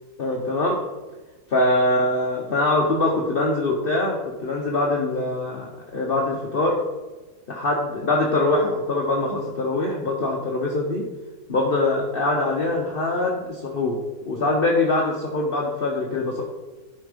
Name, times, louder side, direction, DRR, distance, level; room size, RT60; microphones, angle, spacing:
voice 1, 0.2-0.8 1.5-6.8 7.5-11.0 11.5-14.0 14.2-16.4, left 2 dB, 45° left, 0 dB, 1.0 m, -23 dB
11.5 x 4.4 x 5.1 m, 1.2 s
omnidirectional pair, 1.6 m